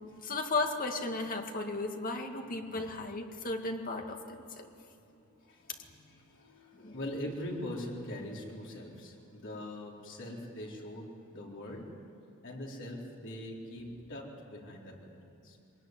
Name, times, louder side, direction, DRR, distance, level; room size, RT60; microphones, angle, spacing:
voice 1, 0.2-4.2 4.6-4.7 6.8-7.0, left 3 dB, 40° left, 3 dB, 2.1 m, -35 dB
voice 2, 5.2-12.0 12.4-15.6, left 1 dB, 60° left, -2 dB, 4.2 m, -42 dB
23.0 x 20.5 x 9.5 m, 2.6 s
head